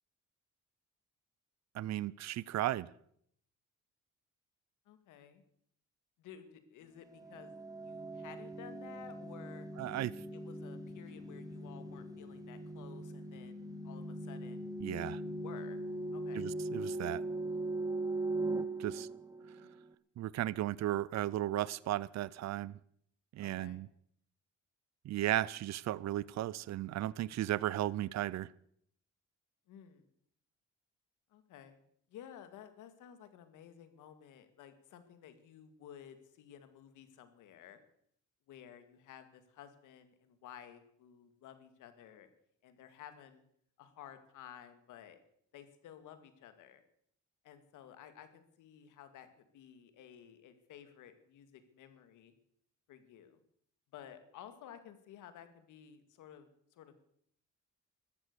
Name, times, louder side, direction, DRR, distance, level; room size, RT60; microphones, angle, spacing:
voice 1, 1.7-2.9 9.8-10.1 14.8-15.2 16.3-17.2 18.8-19.1 20.2-22.7 23.3-23.9 25.0-28.5, right 14 dB, 60° right, 0.6 m, -35 dB
voice 2, 4.9-5.4 6.2-7.5 7.8-9.7 10.3-14.7 15.2-15.8 16.1-16.5 19.4-19.8 23.4-23.8 29.7-30.1 31.3-31.8 32.1-37.8 38.5-42.3 42.6-43.4 43.8-45.2 45.5-46.8 47.4-52.3 52.9-53.4 53.9-57.0, left 9 dB, 90° left, 2.2 m, -54 dB
sound 1, 7.2-19.9, right 2 dB, 10° right, 1.3 m, -40 dB
14.5 x 12.5 x 6.8 m
cardioid pair, 90°, 30 cm